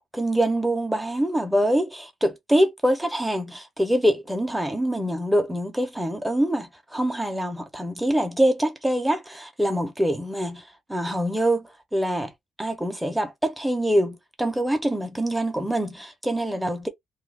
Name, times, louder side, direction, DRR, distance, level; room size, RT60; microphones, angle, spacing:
voice 1, 0.1-10.6 10.9-12.3 12.6-16.9, right 1 dB, 5° right, 0.9 m, -24 dB
2.5 x 2.2 x 3.5 m
cardioid pair, 90°, 0 cm